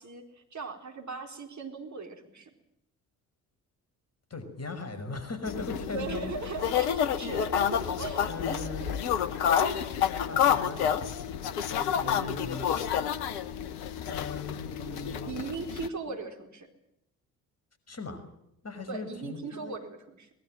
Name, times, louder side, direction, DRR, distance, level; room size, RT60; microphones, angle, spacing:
voice 1, 0.0-2.5 5.9-8.9 15.3-16.7 18.9-20.3, right 4 dB, 35° right, 3 dB, 4.5 m, -38 dB
voice 2, 4.3-6.3 8.3-8.9 10.3-11.4 11.7-12.7 14.1-15.3 16.1-16.2 17.9-18.2 18.6-19.8, left 3 dB, 30° left, 10 dB, 5.7 m, -39 dB
sound 1, 5.5-15.9, left 9 dB, 75° left, 1.3 m, -29 dB
24.0 x 21.0 x 7.8 m, 0.81 s
figure-of-eight pair, 45°, 47 cm